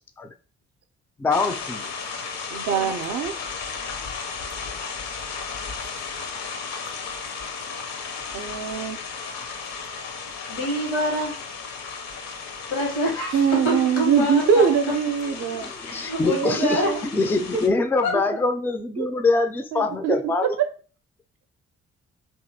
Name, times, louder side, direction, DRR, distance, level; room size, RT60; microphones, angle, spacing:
voice 1, 1.2-1.9 15.5-20.6, left 3 dB, 5° left, 8 dB, 0.3 m, -24 dB
sound 1, 1.3-17.7, left 5 dB, 55° left, 0.6 m, -35 dB
voice 2, 2.5-3.3 8.3-9.0 13.3-15.7 16.3-17.0 19.0-19.1 19.7-20.1, right 7 dB, 55° right, 7 dB, 0.5 m, -23 dB
voice 3, 10.5-11.3 12.7-13.4 13.6-14.7 15.8-16.9 18.0-18.1, left 1 dB, 85° left, -1 dB, 1.0 m, -26 dB
2.7 x 2.3 x 2.7 m, 0.38 s
hypercardioid pair, 40°, 31 cm